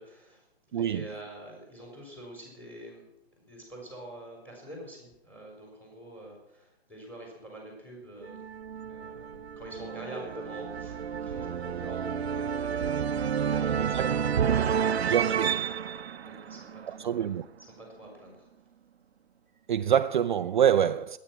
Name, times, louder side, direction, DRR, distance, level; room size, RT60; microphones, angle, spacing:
voice 1, 0.0-3.1 3.5-8.4 8.9-14.9 16.2-18.4, right 1 dB, 5° left, 4.2 m, -46 dB
voice 2, 0.7-1.0 13.8-14.1 15.0-15.6 16.9-17.4 19.7-21.2, right 9 dB, 50° right, 0.5 m, -26 dB
sound 1, 8.2-17.3, right 7 dB, 80° right, 0.8 m, -30 dB
21.5 x 9.5 x 5.9 m
hypercardioid pair, 155°, 31 cm